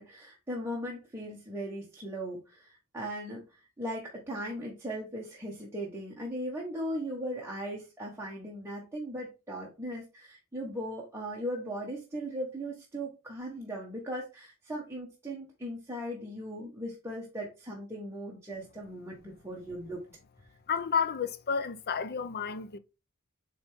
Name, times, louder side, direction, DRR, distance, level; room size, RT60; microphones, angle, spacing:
voice 1, 0.0-20.0, equal, 10° right, 1.3 m, -38 dB
voice 2, 20.7-22.8, left 6 dB, 45° left, 0.6 m, -31 dB
7.9 x 3.4 x 3.5 m
head